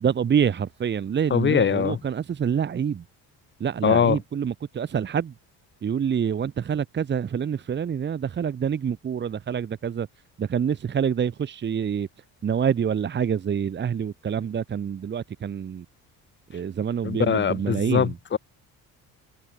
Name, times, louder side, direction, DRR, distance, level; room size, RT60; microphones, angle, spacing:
voice 1, 0.0-3.0 3.6-5.3 5.8-10.1 10.4-12.1 12.4-15.9 16.5-18.1, right 8 dB, 30° right, 1.8 m, -26 dB
voice 2, 1.3-2.0 3.8-4.2 17.0-18.4, left 7 dB, 30° left, 2.3 m, -22 dB
cardioid pair, 165°, 36 cm